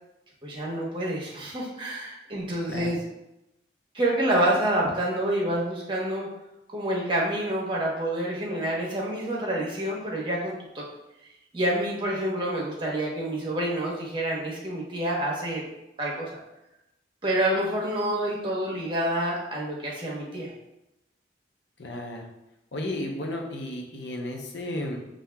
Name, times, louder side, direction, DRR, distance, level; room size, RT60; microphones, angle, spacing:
voice 1, 0.4-3.0 3.9-6.3 6.7-10.8 11.5-15.6 16.0-16.4 17.2-20.5, right 1 dB, 25° right, -3 dB, 1.0 m, -28 dB
voice 2, 21.8-22.3 22.7-25.0, left 1 dB, 75° left, 1 dB, 0.8 m, -33 dB
7.2 x 2.5 x 2.3 m, 0.90 s
head